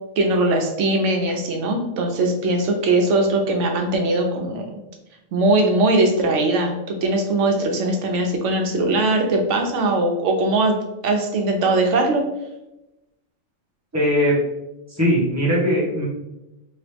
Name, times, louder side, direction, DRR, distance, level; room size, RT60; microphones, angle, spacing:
voice 1, 0.2-4.8 5.3-6.7 7.0-10.8 11.0-12.3, right 2 dB, 70° right, 3 dB, 0.9 m, -20 dB
voice 2, 13.9-14.4 14.9-16.1, equal, 15° right, -5 dB, 0.8 m, -19 dB
3.0 x 2.9 x 3.3 m, 0.94 s
omnidirectional pair, 1.3 m